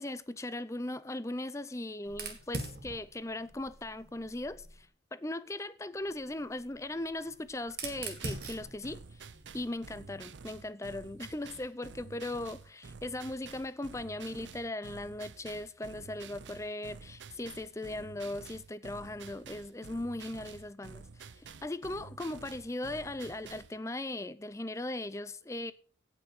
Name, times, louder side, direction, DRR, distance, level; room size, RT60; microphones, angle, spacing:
voice 1, 0.0-9.2 9.5-25.7, left 1 dB, 15° left, 0.5 m, -38 dB
Fire, 2.1-4.8 6.0-10.2, right 3 dB, 60° right, 2.1 m, -44 dB
sound 1, 7.8-23.8, right 5 dB, 85° right, 0.7 m, -50 dB
17.0 x 6.0 x 4.9 m
head